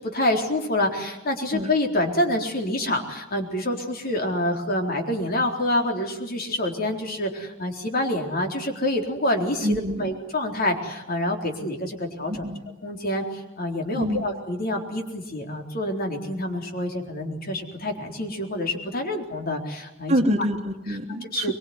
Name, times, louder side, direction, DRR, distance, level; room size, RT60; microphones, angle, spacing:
voice 1, 0.0-12.4 12.8-20.1 20.9-21.0 21.3-21.5, left 1 dB, 50° left, 3 dB, 4.1 m, -27 dB
voice 2, 9.6-10.1 12.3-12.6 14.0-14.3 20.1-21.5, equal, 35° right, 6 dB, 1.7 m, -26 dB
24.0 x 23.0 x 9.7 m, 0.93 s
head